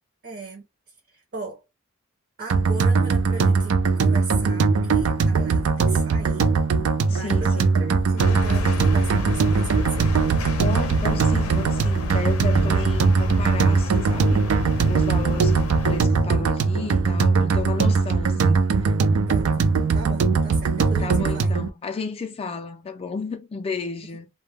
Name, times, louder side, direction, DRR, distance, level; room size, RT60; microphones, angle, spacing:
voice 1, 0.2-0.6 1.1-1.6 2.4-6.5 7.1-10.1 19.3-19.5 19.9-21.5, right 3 dB, 45° right, 0.6 m, -37 dB
sound 1, 2.5-21.7, right 4 dB, 90° right, 0.4 m, -20 dB
voice 2, 7.1-7.8 10.6-14.5 14.9-19.0 21.0-24.3, left 4 dB, 25° left, 0.3 m, -33 dB
sound 2, 8.2-16.0, left 1 dB, 85° left, 0.5 m, -30 dB
sound 3, 12.5-17.5, equal, 65° right, 1.1 m, -33 dB
2.1 x 2.1 x 3.2 m
head